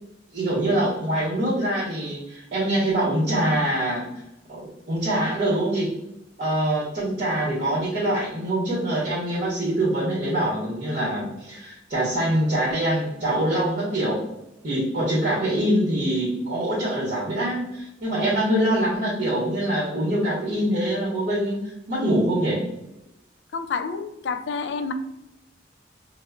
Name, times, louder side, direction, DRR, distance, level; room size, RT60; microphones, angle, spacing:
voice 1, 0.3-4.1 4.5-5.9 6.4-14.2 14.6-21.6 21.9-22.6, right 1 dB, 45° right, -7 dB, 1.1 m, -24 dB
voice 2, 23.5-24.9, left 5 dB, 75° left, 9 dB, 0.4 m, -29 dB
4.9 x 2.0 x 2.4 m, 0.89 s
head